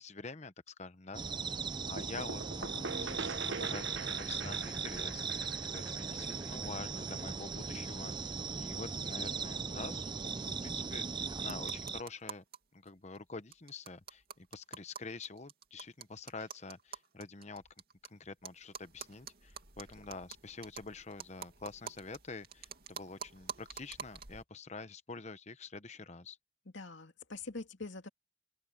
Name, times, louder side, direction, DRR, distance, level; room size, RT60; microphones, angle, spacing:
voice 1, 0.0-1.6 1.9-12.4 12.7-17.6 18.1-26.4, left 3 dB, 35° left, 1.0 m, -47 dB
sound 1, 1.1-12.0, right 5 dB, 25° right, 0.6 m, -38 dB
sound 2, 2.0-7.5, right 4 dB, 70° right, 1.0 m, -43 dB
sound 3, 11.4-12.6 12.9-13.0 13.2-13.3 13.5-18.1 18.4-24.4, right 6 dB, 50° right, 2.8 m, -48 dB
voice 2, 26.7-28.1, left 3 dB, 70° left, 2.6 m, -44 dB
open air
head